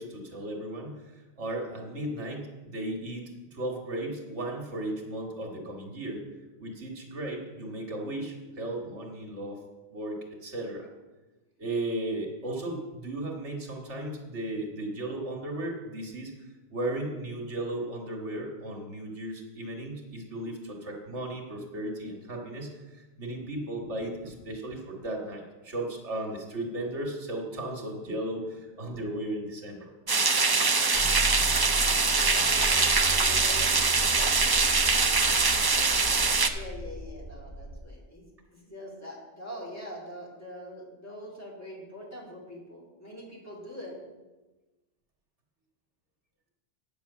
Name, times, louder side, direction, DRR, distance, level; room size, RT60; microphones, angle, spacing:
voice 1, 0.0-6.2 6.6-9.6 9.9-10.9 11.6-16.3 16.7-29.9, right 1 dB, 80° right, 0 dB, 2.1 m, -35 dB
sound 1, 30.1-36.5, right 4 dB, 30° right, 0.4 m, -23 dB
sound 2, 30.9-37.8, equal, 80° left, 2.3 m, -36 dB
voice 2, 32.2-35.2 36.5-38.3 38.5-44.0, equal, 15° left, -5 dB, 2.9 m, -43 dB
9.2 x 6.8 x 7.1 m, 1.1 s
omnidirectional pair, 1.2 m